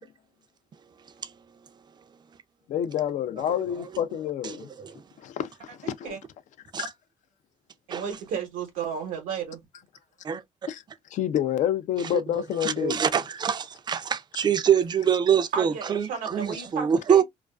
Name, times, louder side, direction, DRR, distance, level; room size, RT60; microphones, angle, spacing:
voice 1, 2.7-4.7 5.2-6.2 6.8-6.9 10.7-10.8 11.1-13.0, left 10 dB, 70° left, 0.4 m, -28 dB
voice 2, 7.9-9.6 15.5-17.2, right 7 dB, 90° right, 0.9 m, -33 dB
voice 3, 12.6-17.2, right 8 dB, 35° right, 0.4 m, -24 dB
2.4 x 2.3 x 2.2 m
cardioid pair, 95°, 13 cm